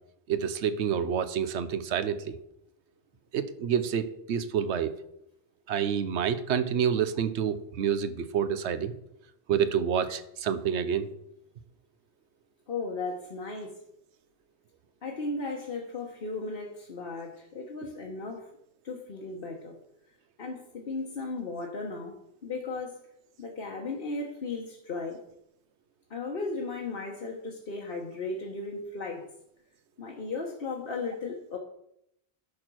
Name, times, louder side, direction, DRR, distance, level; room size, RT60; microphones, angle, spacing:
voice 1, 0.3-2.4 3.3-4.9 5.7-8.9 9.5-11.1, right 8 dB, 90° right, 13 dB, 1.0 m, -28 dB
voice 2, 12.7-13.7 15.0-18.5 18.8-19.8 20.4-22.2 22.4-23.0 23.4-25.2 26.1-29.3 30.0-31.6, left 3 dB, 60° left, 0 dB, 1.2 m, -36 dB
11.0 x 4.3 x 6.1 m, 0.78 s
omnidirectional pair, 1.1 m